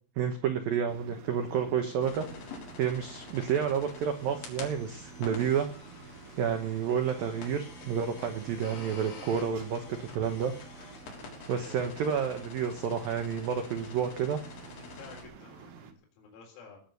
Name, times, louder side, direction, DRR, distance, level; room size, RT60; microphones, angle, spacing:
voice 1, 0.2-2.3 2.8-5.7 6.4-10.5 10.8-10.9 11.5-14.4, right 7 dB, 75° right, 7 dB, 2.1 m, -30 dB
sound 1, 0.9-15.9, right 6 dB, 60° right, 2.8 m, -51 dB
sound 2, 2.0-15.3, left 4 dB, 65° left, 5.8 m, -47 dB
voice 2, 13.5-16.8, left 5 dB, 90° left, 0 dB, 6.5 m, -53 dB
17.5 x 8.8 x 6.9 m, 0.43 s
omnidirectional pair, 6.0 m